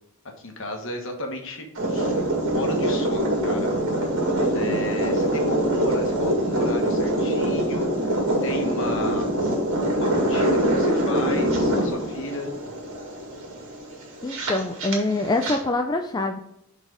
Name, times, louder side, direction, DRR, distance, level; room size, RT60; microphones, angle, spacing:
voice 1, 0.4-2.1 2.5-3.7 4.5-9.3 9.9-12.5, left 1 dB, 60° left, 3 dB, 1.4 m, -35 dB
sound 1, 1.7-15.6, right 1 dB, 60° right, 2.0 m, -24 dB
voice 2, 14.2-16.4, left 2 dB, 20° left, 4 dB, 0.4 m, -25 dB
5.9 x 4.1 x 5.0 m, 0.79 s
head